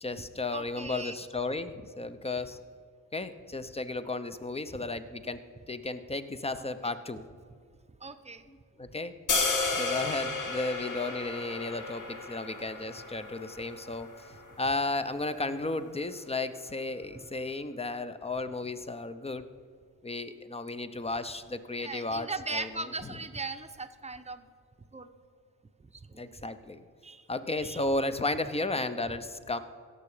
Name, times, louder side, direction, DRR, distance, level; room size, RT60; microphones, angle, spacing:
voice 1, 0.0-2.6 3.1-5.4 5.7-7.2 8.5-9.1 9.7-19.5 20.0-23.3 26.2-26.9 27.3-29.6, left 2 dB, 20° left, 11 dB, 0.8 m, -34 dB
voice 2, 0.5-1.2 6.6-6.7 8.0-8.4 21.8-24.4 24.9-25.1 26.1-26.2 27.0-27.2 27.6-27.8, right 3 dB, 20° right, 9 dB, 0.8 m, -38 dB
sound 1, 9.3-15.4, left 3 dB, 65° left, 1.8 m, -33 dB
17.0 x 6.7 x 5.0 m, 2.1 s
supercardioid pair, 55°, 33 cm